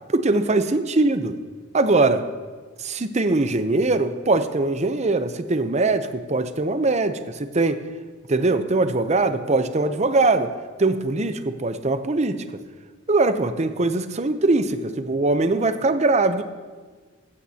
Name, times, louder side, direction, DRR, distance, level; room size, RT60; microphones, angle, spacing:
voice 1, 0.1-1.4 1.7-2.2 2.8-7.8 8.3-10.5 10.8-12.6 13.1-16.4, right 2 dB, 35° right, 10 dB, 0.7 m, -21 dB
15.5 x 15.5 x 2.9 m, 1.5 s
head